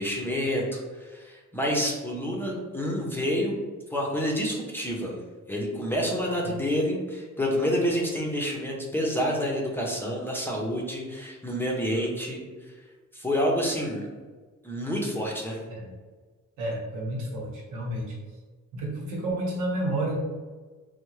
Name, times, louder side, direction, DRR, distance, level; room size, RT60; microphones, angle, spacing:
voice 1, 0.0-3.5 3.9-5.1 5.5-12.4 13.1-14.1 14.6-15.6, equal, 5° left, -2 dB, 0.7 m, -28 dB
voice 2, 16.6-18.1 18.7-20.1, right 1 dB, 90° right, -4 dB, 1.2 m, -30 dB
3.4 x 2.3 x 3.1 m, 1.4 s
cardioid pair, 90°, 30 cm